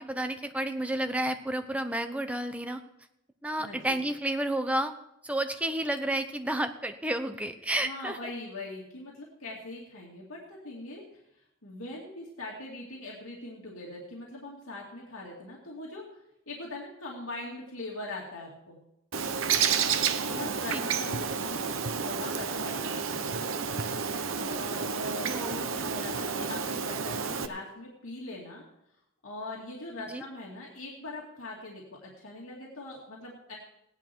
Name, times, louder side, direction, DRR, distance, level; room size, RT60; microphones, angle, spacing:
voice 1, 0.0-2.8 3.4-4.9 5.2-8.2 20.7-20.8 25.2-25.7 30.1-30.2, right 1 dB, 5° right, 8 dB, 0.7 m, -31 dB
voice 2, 3.6-4.0 7.8-11.0 11.6-16.0 16.5-18.8 20.3-23.4 24.4-28.6 29.2-33.5, left 2 dB, 85° left, -3 dB, 2.5 m, -41 dB
Bird, 19.1-27.5, right 6 dB, 70° right, 0.8 m, -30 dB
16.5 x 10.5 x 4.6 m, 0.82 s
head